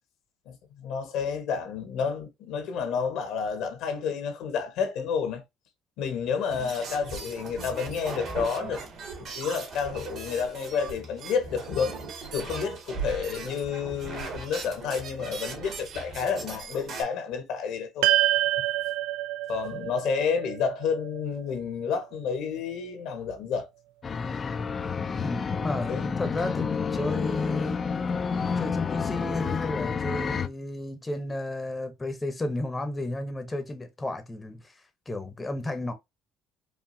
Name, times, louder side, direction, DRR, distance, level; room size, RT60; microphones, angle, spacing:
voice 1, 0.5-5.4 6.0-8.8 9.2-12.0 12.3-18.1 19.5-23.7 25.9-26.0, left 6 dB, 75° left, 1.2 m, -30 dB
sound 1, 6.5-17.0, right 4 dB, 60° right, 1.8 m, -38 dB
sound 2, 18.0-22.5, right 15 dB, 85° right, 0.3 m, -28 dB
sound 3, 24.0-30.5, left 5 dB, 35° left, 0.4 m, -29 dB
voice 2, 25.2-27.8 28.6-35.9, left 2 dB, 20° left, 0.8 m, -33 dB
4.7 x 2.6 x 2.6 m
supercardioid pair, 90°, 0 cm